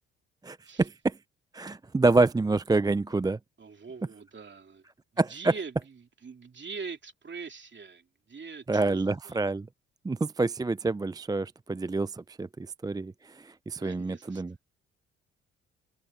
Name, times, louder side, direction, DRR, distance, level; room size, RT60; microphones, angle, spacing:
voice 1, 0.4-1.2 1.5-3.4 5.2-5.5 8.7-9.7 10.0-14.5, right 3 dB, 15° right, 0.5 m, -27 dB
voice 2, 3.6-4.8 5.1-9.4 13.8-14.4, right 5 dB, 40° right, 3.1 m, -43 dB
open air
hypercardioid pair, 45°, 30 cm